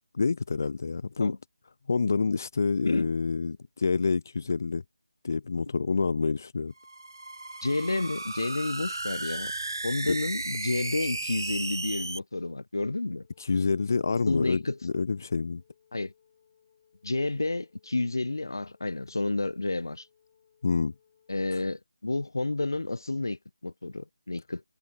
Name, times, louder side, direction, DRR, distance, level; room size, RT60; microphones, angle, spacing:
voice 1, 0.1-1.4 1.9-4.8 5.2-6.7 10.1-10.2 13.4-15.6 20.6-20.9 21.5-21.6, left 4 dB, 50° left, 0.4 m, -27 dB
sound 1, 6.8-12.2, right 2 dB, 85° right, 0.9 m, -35 dB
voice 2, 7.6-9.5 9.8-13.3 14.3-14.8 15.9-16.1 17.0-20.1 21.3-24.6, left 2 dB, 80° left, 1.3 m, -30 dB
Wind instrument woodwind instrument, 13.1-21.6, left 8 dB, 30° left, 4.7 m, -66 dB
figure-of-eight pair, 165°, 2 cm